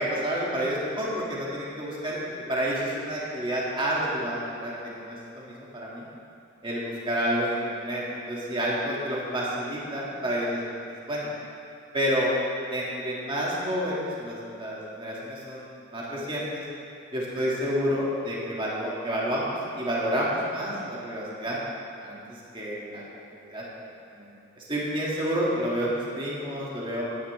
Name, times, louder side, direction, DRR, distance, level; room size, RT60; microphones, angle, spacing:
voice 1, 0.0-2.2 2.5-6.1 6.6-10.6 11.1-11.3 11.9-12.3 12.7-16.6 17.1-21.6 22.0-22.2 22.5-23.6 24.1-24.3 24.6-27.0, equal, 25° right, -6 dB, 2.3 m, -29 dB
17.5 x 11.0 x 3.5 m, 2.6 s
head